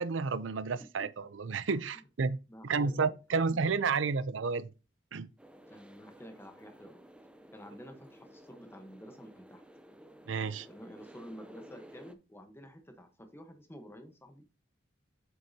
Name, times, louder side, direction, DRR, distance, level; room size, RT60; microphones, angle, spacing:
voice 1, 0.0-2.4 2.6-4.7 5.1-5.3 10.3-10.7, right 4 dB, 90° right, 0.6 m, -31 dB
voice 2, 2.5-2.9 5.7-7.0 7.5-9.6 10.7-14.4, equal, 15° left, 1.1 m, -50 dB
sound 1, 5.4-12.1, equal, 5° right, 0.5 m, -54 dB
7.7 x 6.5 x 2.8 m
head